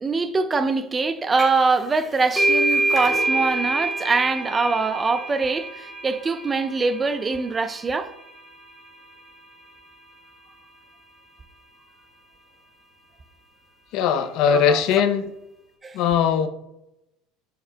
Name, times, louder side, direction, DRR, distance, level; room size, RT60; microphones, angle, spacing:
voice 1, 0.0-8.1 14.5-14.8 15.8-16.0, right 4 dB, 20° right, 0.4 m, -23 dB
sound 1, 1.4-1.7 2.0-9.3, right 2 dB, 5° left, 1.9 m, -27 dB
voice 2, 13.9-15.3 15.9-16.5, left 7 dB, 65° left, 0.6 m, -20 dB
7.2 x 5.8 x 2.2 m
supercardioid pair, 105°, 0 cm